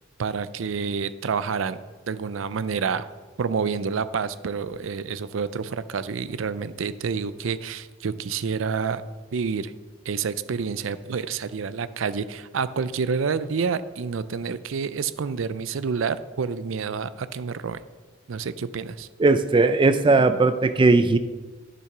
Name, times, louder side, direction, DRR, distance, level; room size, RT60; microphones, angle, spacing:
voice 1, 0.2-3.1 3.4-9.0 9.3-9.7 10.0-17.8 18.3-19.1, right 5 dB, 85° right, 14 dB, 0.5 m, -28 dB
voice 2, 19.2-21.2, right 3 dB, 25° right, 11 dB, 0.4 m, -18 dB
10.5 x 6.9 x 5.9 m, 1.3 s
head